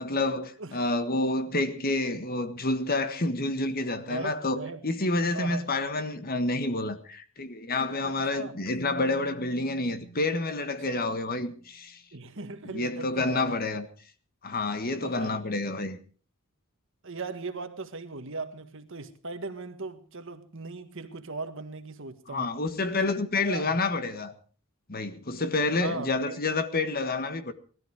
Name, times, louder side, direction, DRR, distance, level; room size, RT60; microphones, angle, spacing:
voice 1, 0.0-12.0 12.6-13.9 14.4-16.0 22.3-24.3 24.9-27.5, left 2 dB, 45° left, 1.5 m, -29 dB
voice 2, 3.7-4.8 5.2-5.7 8.0-8.6 12.1-13.6 15.0-15.5 17.0-22.5 23.0-23.1 23.4-23.8 25.8-26.4, right 3 dB, 65° right, 1.7 m, -38 dB
Keyboard (musical), 8.7-11.9, right 4 dB, 85° left, 6.5 m, -50 dB
18.5 x 13.5 x 4.8 m
head